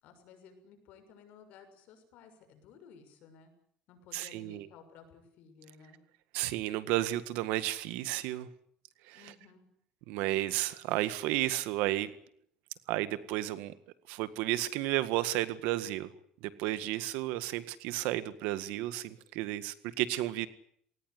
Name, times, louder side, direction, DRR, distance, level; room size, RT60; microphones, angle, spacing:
voice 1, 0.0-3.5 3.9-6.0 9.1-9.7, left 6 dB, 70° left, 7 dB, 6.5 m, -56 dB
voice 2, 4.1-4.7 6.3-8.5 9.1-9.2 10.1-12.1 12.9-13.7 14.1-16.1 16.4-20.5, right 15 dB, 90° right, 13 dB, 1.8 m, -32 dB
20.0 x 19.0 x 9.7 m, 0.65 s
cardioid pair, 145°, 3 cm